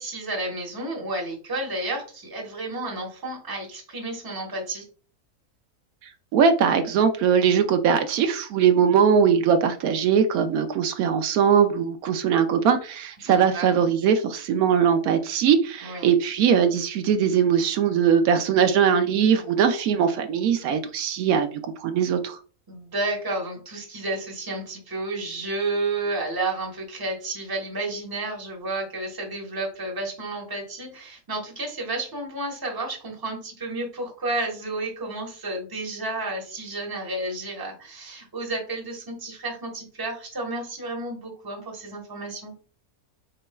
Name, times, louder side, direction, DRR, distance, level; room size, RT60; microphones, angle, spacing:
voice 1, 0.0-4.9 13.2-13.7 15.8-16.1 22.7-42.5, right 2 dB, 15° right, 0 dB, 0.9 m, -31 dB
voice 2, 6.3-22.4, right 7 dB, 80° right, 8 dB, 1.0 m, -21 dB
4.1 x 3.8 x 2.2 m, 0.39 s
omnidirectional pair, 1.5 m